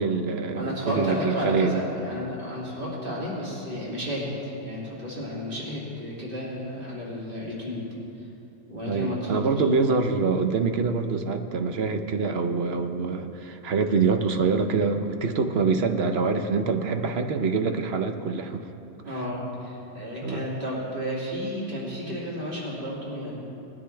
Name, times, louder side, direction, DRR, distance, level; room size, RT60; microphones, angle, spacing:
voice 1, 0.0-1.8 8.8-18.7 20.2-20.4, right 4 dB, 55° right, 6 dB, 0.8 m, -25 dB
voice 2, 0.5-7.9 8.2-8.3 8.7-9.4 19.0-23.3, equal, 35° right, -6 dB, 2.8 m, -32 dB
20.0 x 10.0 x 3.3 m, 2.9 s
omnidirectional pair, 1.5 m